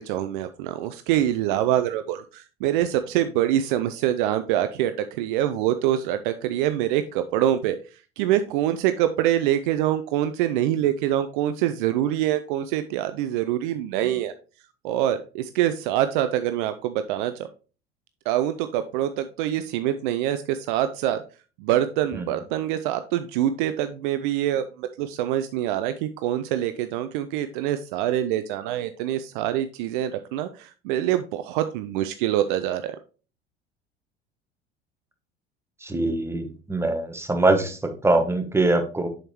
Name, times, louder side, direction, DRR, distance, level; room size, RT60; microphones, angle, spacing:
voice 1, 0.0-7.8 8.2-14.3 14.8-17.5 18.3-21.2 21.6-33.0, right 12 dB, 55° right, 10 dB, 0.5 m, -25 dB
voice 2, 35.8-39.1, right 2 dB, 10° right, 5 dB, 1.2 m, -23 dB
7.5 x 6.5 x 3.0 m, 0.36 s
figure-of-eight pair, 70°, 31 cm